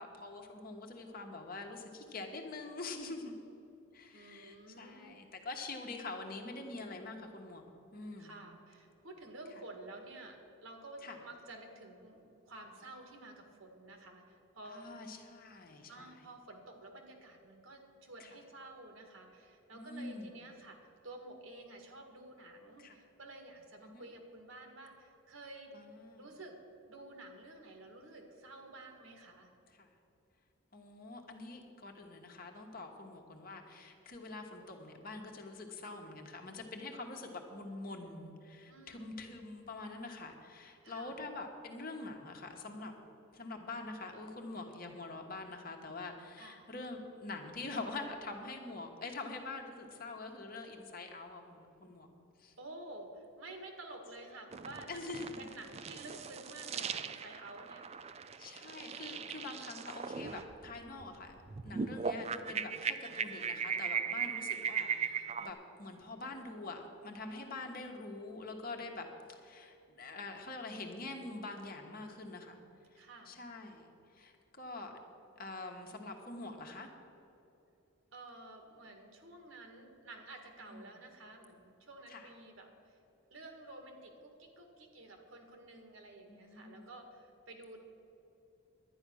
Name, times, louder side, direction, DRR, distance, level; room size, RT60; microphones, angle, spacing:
voice 1, 0.0-3.3 3.9-7.6 7.9-8.4 11.0-11.2 14.6-16.2 18.2-18.3 19.7-20.3 22.8-23.0 23.8-24.0 25.7-26.3 29.7-29.9 30.7-42.9 43.3-52.1 52.4-52.5 54.9-55.6 58.4-61.3 61.6-72.6 72.9-74.9 75.4-76.9 80.6-81.0 82.1-82.3 86.3-86.9, left 3 dB, 45° left, 3 dB, 1.3 m, -45 dB
voice 2, 4.1-5.2 8.2-14.9 15.9-20.8 21.0-25.8 26.2-26.6 26.9-29.5 38.7-39.2 40.8-41.2 46.4-46.7 52.6-55.1 55.4-57.8 64.1-64.6 73.0-73.4 78.1-83.0 83.3-87.8, right 2 dB, 75° right, 4 dB, 1.8 m, -51 dB
sound 1, 54.5-65.5, right 6 dB, 30° right, 0.4 m, -38 dB
11.5 x 9.7 x 6.3 m, 2.9 s
head